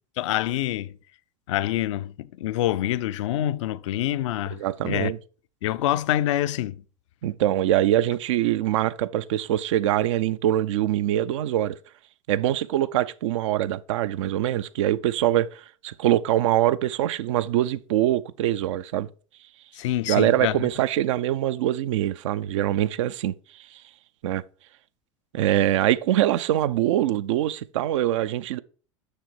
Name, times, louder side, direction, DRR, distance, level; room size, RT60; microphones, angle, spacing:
voice 1, 0.2-1.0 1.5-4.6 4.8-5.1 5.6-6.8 19.7-20.7, left 13 dB, 65° left, 0.5 m, -26 dB
voice 2, 4.5-5.2 7.2-11.8 12.3-19.1 20.1-23.8 24.2-24.4 25.3-28.6, right 13 dB, 65° right, 0.5 m, -24 dB
6.5 x 6.4 x 4.5 m
figure-of-eight pair, 80°, 17 cm